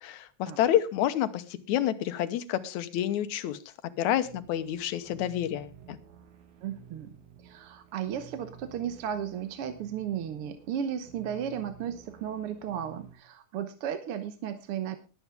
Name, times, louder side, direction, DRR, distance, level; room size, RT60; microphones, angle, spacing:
voice 1, 0.0-3.6 4.0-6.0, left 11 dB, 80° left, 12 dB, 2.3 m, -29 dB
sound 1, 4.2-13.2, right 8 dB, 80° right, 3.0 m, -52 dB
voice 2, 6.6-15.0, right 9 dB, 65° right, 9 dB, 1.6 m, -35 dB
20.0 x 8.3 x 3.5 m, 0.31 s
omnidirectional pair, 3.3 m